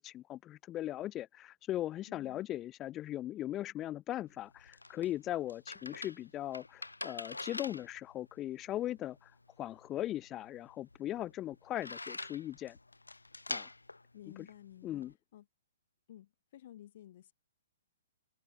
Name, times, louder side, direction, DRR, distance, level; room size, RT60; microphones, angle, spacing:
voice 1, 0.0-9.3 9.6-12.8 13.5-13.7 14.3-14.5 14.8-15.1, left 13 dB, 25° left, 0.3 m, -39 dB
voice 2, 2.1-2.5 14.1-15.0 15.3-15.4 16.1-17.3, left 12 dB, 50° left, 5.8 m, -53 dB
sound 1, 4.3-15.1, left 2 dB, 90° left, 1.0 m, -46 dB
open air
figure-of-eight pair, 125°, 0 cm